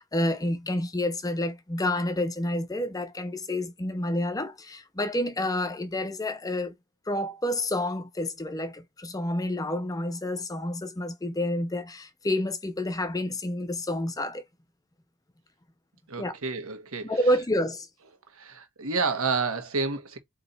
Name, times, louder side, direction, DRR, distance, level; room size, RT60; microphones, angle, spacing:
voice 1, 0.0-6.7 7.1-14.4 16.2-16.3 17.0-17.9, left 1 dB, 15° left, 0.6 m, -29 dB
voice 2, 16.1-17.2 18.3-20.2, right 4 dB, 75° right, 1.2 m, -30 dB
3.9 x 3.0 x 4.1 m
head